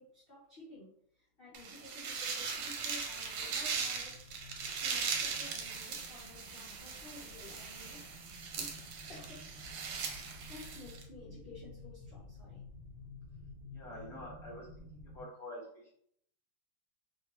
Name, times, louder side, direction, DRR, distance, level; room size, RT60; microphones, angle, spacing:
voice 1, 0.0-8.2 8.6-8.7 9.1-9.4 10.5-12.6, left 2 dB, 50° left, -6 dB, 0.7 m, -53 dB
sound 1, 1.5-11.0, right 5 dB, 85° right, 1.3 m, -39 dB
sound 2, 1.9-15.2, left 2 dB, 35° right, 1.2 m, -53 dB
voice 2, 13.7-16.0, left 1 dB, ahead, -6 dB, 0.8 m, -47 dB
2.9 x 2.8 x 2.9 m, 0.68 s
omnidirectional pair, 1.9 m